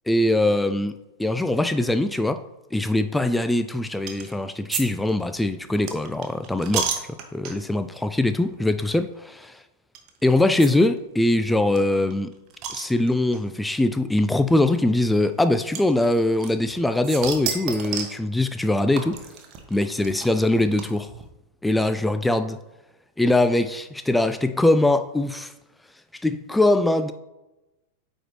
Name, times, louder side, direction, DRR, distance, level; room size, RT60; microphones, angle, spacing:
voice 1, 0.1-2.4 2.7-6.9 7.3-9.4 10.2-12.3 12.7-19.2 19.7-21.1 21.6-22.6 23.2-25.5 26.2-27.1, left 1 dB, 5° left, 0.3 m, -22 dB
sound 1, 4.1-4.3 4.7-4.8 5.1-7.8 8.4-8.6 8.8-8.9 9.9-10.1 10.6-10.7 11.0-11.1 11.2-11.3 11.8-13.4 14.3-14.4 15.7-16.7 17.0-18.2 19.0-21.2, right 7 dB, 40° right, 1.0 m, -31 dB
8.8 x 4.1 x 3.1 m
figure-of-eight pair, 95°, 0 cm